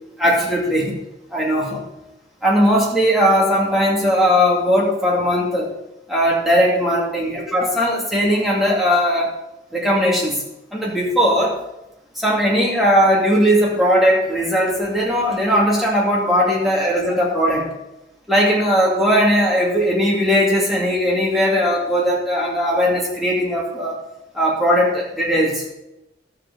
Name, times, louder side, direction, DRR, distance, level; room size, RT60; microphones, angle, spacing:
voice 1, 0.2-1.0 1.3-1.8 2.4-5.7 6.1-9.3 9.7-10.4 10.7-11.6 12.2-17.7 18.3-24.0 24.3-25.6, equal, ahead, -5 dB, 2.3 m, -18 dB
11.5 x 7.9 x 4.1 m, 0.92 s
head